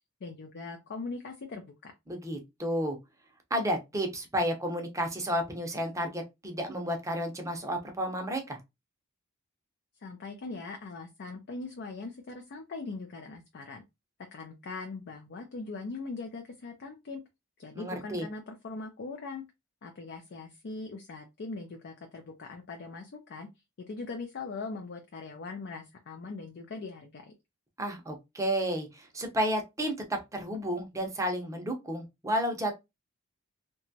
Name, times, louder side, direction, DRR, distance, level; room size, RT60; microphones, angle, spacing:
voice 1, 0.2-1.9 10.0-13.8 14.3-17.2 17.6-19.4 19.8-23.5 23.9-27.3, left 3 dB, 50° left, 0.4 m, -41 dB
voice 2, 2.1-3.0 3.5-8.6 17.7-18.3 27.8-32.7, equal, 15° right, 0.6 m, -32 dB
2.9 x 2.3 x 2.7 m
head